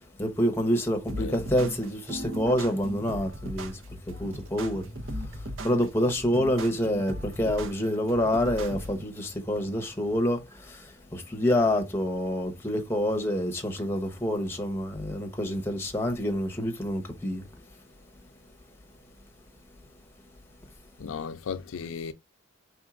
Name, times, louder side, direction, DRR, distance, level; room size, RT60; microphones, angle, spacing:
voice 1, 0.2-3.7 4.1-4.9 5.6-10.8 11.1-17.4, equal, 10° left, 0.9 m, -27 dB
sound 1, 1.1-9.1, equal, 70° right, 0.7 m, -37 dB
voice 2, 21.0-22.1, left 6 dB, 75° left, 0.4 m, -35 dB
4.4 x 3.7 x 2.4 m
head